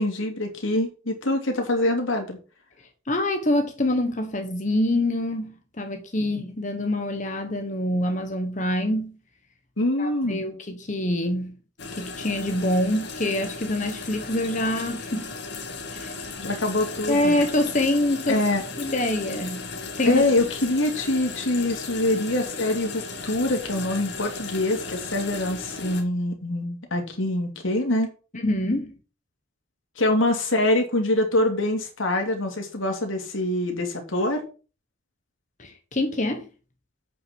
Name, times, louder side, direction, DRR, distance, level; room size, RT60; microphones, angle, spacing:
voice 1, 0.0-2.4 9.8-10.4 16.4-17.4 18.3-18.6 20.0-28.1 30.0-34.4, left 1 dB, 75° left, 2.8 m, -24 dB
voice 2, 3.1-9.2 10.0-11.6 11.9-15.3 15.9-16.1 17.1-18.4 18.8-19.7 20.0-20.2 28.3-28.9 35.6-36.5, left 1 dB, 40° left, 1.2 m, -25 dB
sound 1, 11.8-26.0, left 4 dB, 55° left, 2.4 m, -36 dB
8.4 x 6.1 x 6.1 m
head